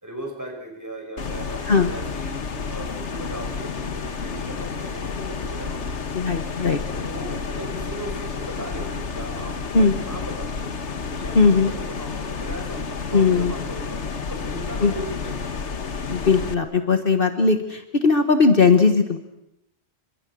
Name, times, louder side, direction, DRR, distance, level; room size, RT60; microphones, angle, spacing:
voice 1, 0.0-2.3 2.7-6.4 7.0-10.7 11.1-15.7, right 1 dB, 15° right, 1 dB, 6.3 m, -37 dB
sound 1, 1.2-16.5, left 5 dB, 85° left, 1.7 m, -30 dB
voice 2, 6.1-7.4 9.7-9.9 11.3-11.7 13.1-13.5 14.8-14.9 16.1-19.2, left 4 dB, 55° left, 6 dB, 1.6 m, -19 dB
28.0 x 25.0 x 6.3 m, 0.86 s
omnidirectional pair, 1.2 m